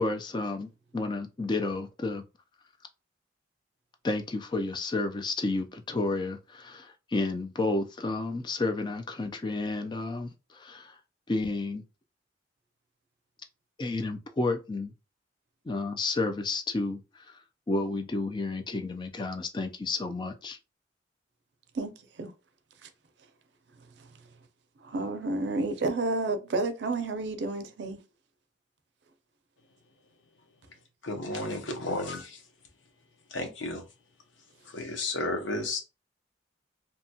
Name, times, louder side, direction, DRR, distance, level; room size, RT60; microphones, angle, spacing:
voice 1, 0.0-2.2 4.0-11.0 11.3-11.8 13.8-14.9 15.7-17.4 17.7-20.6, left 2 dB, 25° left, 0.4 m, -31 dB
voice 2, 21.7-22.3 22.8-22.9 23.8-24.3 24.8-28.0, right 2 dB, 65° right, 0.5 m, -31 dB
voice 3, 31.0-32.4 33.3-33.8 34.7-35.8, left 2 dB, 90° left, 0.7 m, -32 dB
2.8 x 2.2 x 2.7 m
head